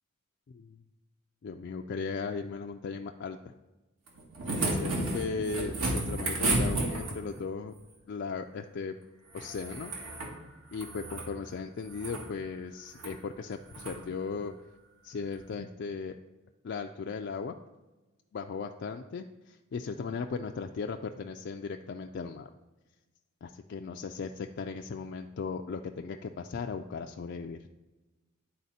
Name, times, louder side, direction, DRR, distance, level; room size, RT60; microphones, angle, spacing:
voice 1, 0.5-0.8 1.4-3.5 4.7-7.7 8.1-9.0 9.3-9.9 10.7-14.5 15.0-16.2 16.6-17.5 18.3-22.5 23.4-27.6, left 5 dB, 50° left, 4 dB, 0.3 m, -37 dB
sound 1, 4.1-7.4 9.3-10.3 10.7-11.3 11.8-12.3 12.9-13.1 13.7-14.0 15.3-15.4, right 2 dB, 75° right, 1.8 m, -32 dB
10.5 x 4.2 x 4.1 m, 1.1 s
head